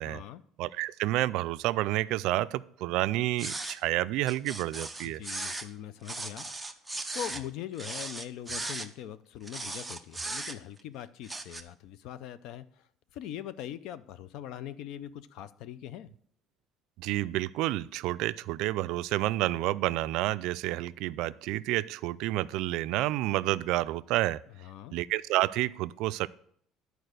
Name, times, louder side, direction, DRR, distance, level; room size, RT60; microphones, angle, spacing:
voice 1, 0.0-0.4 5.0-6.7 7.1-16.1 24.5-25.0, left 11 dB, 65° left, 15 dB, 0.5 m, -42 dB
voice 2, 0.6-5.2 17.0-24.4 24.9-26.3, right 16 dB, 75° right, 16 dB, 0.3 m, -29 dB
sound 1, 3.4-3.8 4.3-5.7 6.0-7.4 7.8-8.9 9.5-10.8 11.2-11.6, right 2 dB, 5° right, 0.6 m, -37 dB
11.0 x 4.7 x 6.6 m, 0.63 s
cardioid pair, 155°, 0 cm